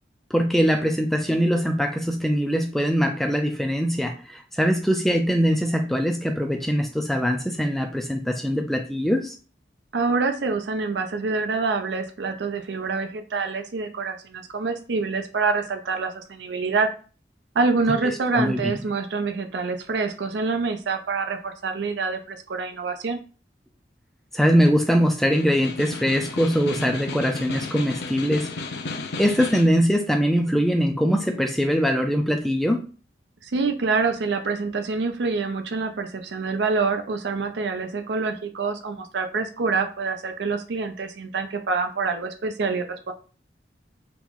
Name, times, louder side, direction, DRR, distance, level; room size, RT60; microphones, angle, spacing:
voice 1, 0.3-9.4 18.3-18.7 24.3-28.5 29.2-32.9, equal, ahead, 0.3 m, -22 dB
voice 2, 9.9-16.9 17.5-23.2 33.4-43.1, right 4 dB, 85° right, 0.5 m, -26 dB
Snare drum, 25.2-29.8, left 3 dB, 70° left, 0.5 m, -34 dB
2.9 x 2.5 x 3.6 m
head